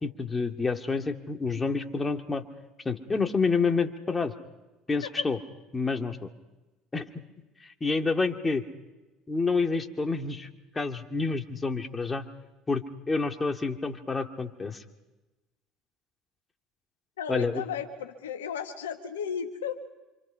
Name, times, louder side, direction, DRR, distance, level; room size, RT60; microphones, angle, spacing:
voice 1, 0.0-2.4 2.8-4.3 4.9-5.4 5.7-6.3 6.9-7.1 7.6-8.6 9.3-10.5 10.7-12.3 12.7-14.8 17.3-17.6, left 4 dB, 20° left, 5 dB, 2.4 m, -28 dB
voice 2, 17.2-19.9, left 7 dB, 80° left, 6 dB, 1.6 m, -34 dB
28.0 x 26.5 x 5.8 m, 1.1 s
hypercardioid pair, 65°, 0 cm